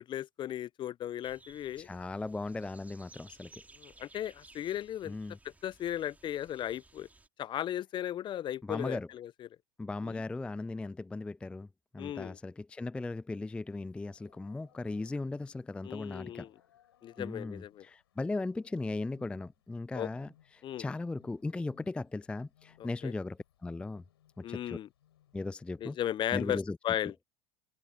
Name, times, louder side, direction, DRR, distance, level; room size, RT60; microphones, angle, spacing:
voice 1, 0.0-1.9 3.8-5.1 5.6-7.1 7.4-9.5 10.0-10.2 12.0-12.4 15.8-16.5 17.0-17.9 19.9-20.1 20.6-20.9 23.0-23.1 24.4-24.9 25.8-27.1, left 11 dB, 40° left, 0.7 m, -36 dB
sound 1, 1.2-7.3, right 3 dB, 10° right, 3.5 m, -58 dB
voice 2, 1.8-3.6 5.1-5.4 8.6-9.1 9.8-11.7 11.9-16.5 17.2-24.0 24.4-24.8 25.3-26.0 26.3-26.8, left 3 dB, 10° left, 0.4 m, -37 dB
sound 2, 13.7-25.8, left 11 dB, 80° left, 6.5 m, -67 dB
hypercardioid pair, 80°, 13 cm